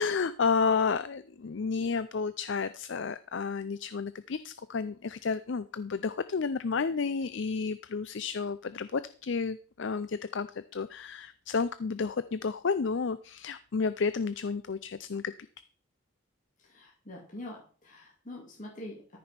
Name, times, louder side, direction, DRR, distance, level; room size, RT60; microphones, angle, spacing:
voice 1, 0.0-15.3, left 5 dB, 60° left, 14 dB, 0.5 m, -31 dB
voice 2, 16.6-19.2, left 1 dB, 35° left, -3 dB, 2.4 m, -45 dB
14.0 x 5.3 x 5.9 m, 0.42 s
head